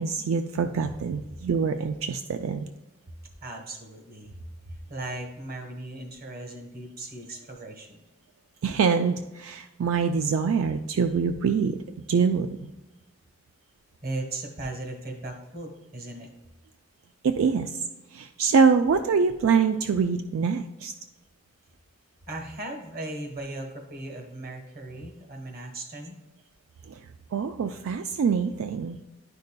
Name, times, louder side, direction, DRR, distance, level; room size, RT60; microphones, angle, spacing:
voice 1, 0.0-2.7 8.6-11.8 12.1-12.7 17.2-17.7 18.1-20.9 26.9-27.0 27.3-29.0, right 5 dB, 90° right, 8 dB, 0.4 m, -24 dB
voice 2, 3.4-4.4 4.7-8.0 14.0-16.3 22.3-26.1, right 2 dB, 50° right, 2 dB, 1.3 m, -37 dB
10.5 x 5.3 x 2.2 m, 1.0 s
head